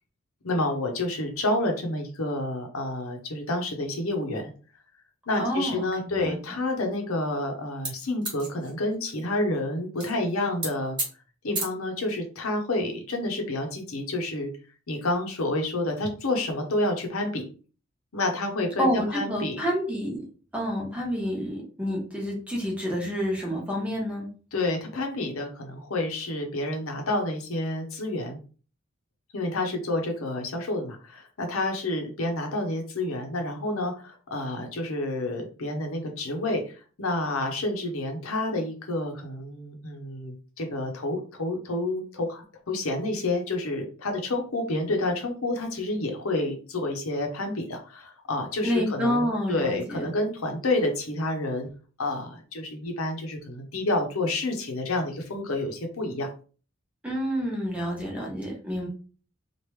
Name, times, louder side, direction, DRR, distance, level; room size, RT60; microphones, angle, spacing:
voice 1, 0.4-4.5 5.3-11.0 11.4-14.5 14.9-17.5 18.1-19.6 24.5-28.4 29.3-51.7 52.0-56.3, left 2 dB, 80° left, 3 dB, 0.8 m, -29 dB
voice 2, 5.4-6.4 18.8-20.2 20.5-24.3 48.6-50.0 57.0-58.9, equal, 5° right, -2 dB, 1.0 m, -28 dB
sound 1, 7.8-9.2 10.0-10.1 10.4-10.7 11.0-11.1 11.5-11.6, right 2 dB, 25° right, 1.3 m, -30 dB
3.1 x 2.5 x 3.2 m, 0.38 s
head